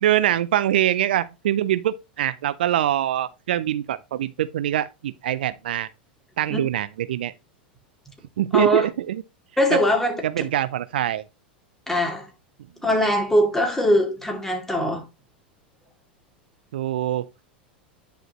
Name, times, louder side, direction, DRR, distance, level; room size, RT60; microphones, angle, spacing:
voice 1, 0.0-5.9 6.4-7.3 8.4-9.2 9.7-9.8 10.2-11.2 16.7-17.2, right 12 dB, 70° right, 0.4 m, -24 dB
voice 2, 8.5-8.9 9.6-10.2 11.9-12.3 12.8-15.0, equal, 5° left, 2.6 m, -21 dB
10.0 x 5.0 x 3.0 m
hypercardioid pair, 90°, 5 cm